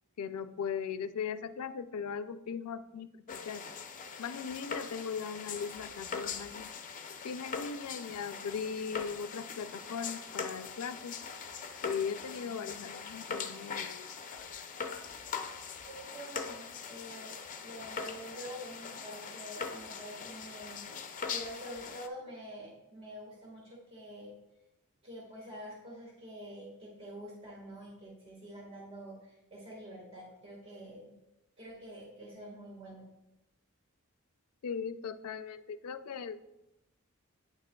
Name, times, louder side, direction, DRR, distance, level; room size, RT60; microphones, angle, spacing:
voice 1, 0.2-3.6 4.2-6.7 7.2-11.2 11.8-14.6 34.6-36.4, left 6 dB, 85° left, 12 dB, 0.4 m, -39 dB
sound 1, 3.3-22.1, left 5 dB, 35° left, 0.5 m, -42 dB
voice 2, 15.8-24.3 25.0-31.1 31.6-33.0, equal, 25° right, -4 dB, 1.6 m, -47 dB
9.3 x 6.7 x 2.3 m, 0.94 s
head